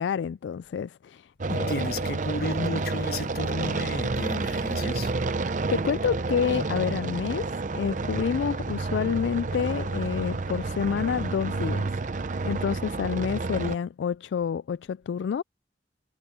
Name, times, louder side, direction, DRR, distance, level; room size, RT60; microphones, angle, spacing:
voice 1, 0.0-1.9 5.7-7.5 7.7-15.4, left 7 dB, 85° left, 0.3 m, -29 dB
sound 1, 1.4-13.8, right 3 dB, 45° right, 0.7 m, -30 dB
voice 2, 1.5-5.1, left 2 dB, 60° left, 1.5 m, -33 dB
head